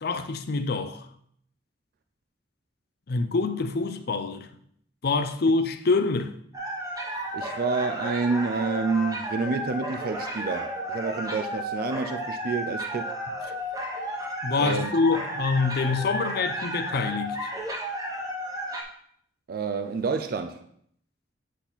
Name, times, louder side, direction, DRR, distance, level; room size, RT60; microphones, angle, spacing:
voice 1, 0.0-1.1 3.1-4.5 5.0-6.3 14.4-17.5, left 3 dB, 60° left, 0.6 m, -26 dB
sound 1, 6.5-18.8, equal, 20° right, 1.1 m, -33 dB
voice 2, 7.3-13.1 14.6-14.9 19.5-20.7, right 4 dB, 55° right, 0.4 m, -28 dB
8.2 x 4.1 x 4.0 m
head